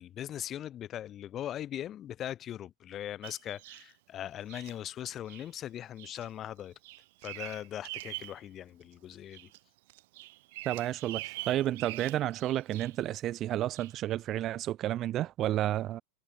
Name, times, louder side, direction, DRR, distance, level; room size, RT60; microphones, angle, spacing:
voice 1, 0.0-6.7 7.2-9.5, left 11 dB, 35° left, 3.0 m, -40 dB
Bird vocalization bird call bird song, 3.2-3.9 4.5-4.7 5.3-5.5 6.0-6.3 6.6-8.4 8.8-9.6 9.9-13.1 13.7-13.9, right 20 dB, 55° right, 2.4 m, -44 dB
voice 2, 10.7-16.0, right 13 dB, 35° right, 0.6 m, -31 dB
figure-of-eight pair, 85°, 0 cm